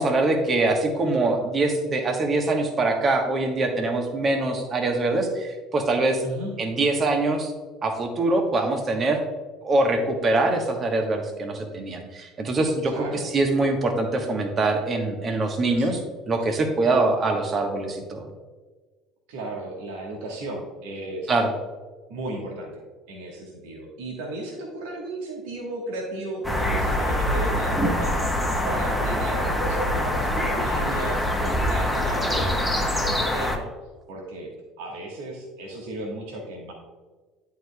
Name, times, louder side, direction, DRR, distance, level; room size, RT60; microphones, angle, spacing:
voice 1, 0.0-6.2 6.6-7.5 7.8-9.2 9.6-16.0 16.3-18.3 21.3-21.5, right 2 dB, 35° right, 4 dB, 1.2 m, -23 dB
voice 2, 12.9-13.3 15.8-16.0 19.3-21.3 22.1-22.7 23.1-28.2 28.6-33.7 34.1-34.5 34.8-36.7, right 1 dB, 65° right, -1 dB, 1.4 m, -34 dB
sound 1, 26.4-33.6, left 1 dB, ahead, 1.1 m, -24 dB
10.5 x 4.7 x 2.3 m, 1.3 s
figure-of-eight pair, 60°, 0 cm